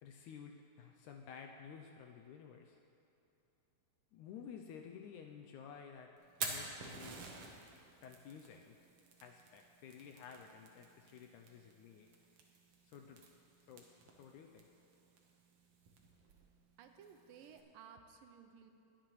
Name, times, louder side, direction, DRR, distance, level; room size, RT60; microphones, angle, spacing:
voice 1, 0.0-2.8 4.1-6.1 6.4-7.3 8.0-8.8 9.2-12.1 12.8-13.2 13.7-14.7, left 7 dB, 85° left, 3 dB, 1.8 m, -53 dB
Fire, 6.2-17.6, right 4 dB, 65° right, 1.5 m, -51 dB
voice 2, 16.8-18.7, right 7 dB, 85° right, 6 dB, 2.3 m, -57 dB
21.5 x 8.9 x 3.1 m, 2.8 s
omnidirectional pair, 3.9 m